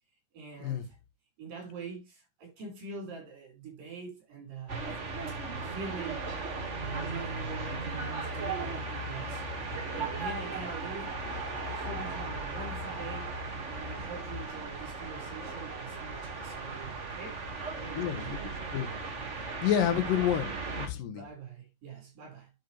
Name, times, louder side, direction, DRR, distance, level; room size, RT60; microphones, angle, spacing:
voice 1, 0.3-1.0 1.4-4.9 5.3-6.3 6.8-9.7 10.0-11.1 11.6-13.4 13.7-18.5 20.9-22.5, right 4 dB, 90° right, 5.7 m, -44 dB
sound 1, 4.7-20.9, right 3 dB, 75° right, 0.6 m, -37 dB
voice 2, 18.0-18.4 18.7-18.9 19.6-21.2, left 10 dB, 85° left, 2.8 m, -29 dB
12.0 x 5.1 x 3.0 m
omnidirectional pair, 3.8 m